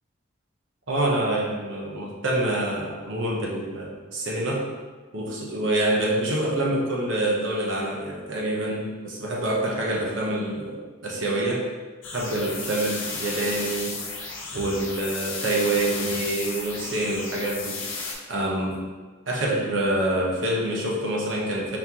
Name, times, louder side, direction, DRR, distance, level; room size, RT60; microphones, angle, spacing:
voice 1, 0.9-4.7 5.1-11.7 12.1-14.0 14.5-17.8 18.3-18.8 19.3-21.8, right 1 dB, 70° right, -3 dB, 0.9 m, -26 dB
sound 1, 12.0-18.1, left 4 dB, 75° left, 0.9 m, -34 dB
4.3 x 3.6 x 2.9 m, 1.4 s
head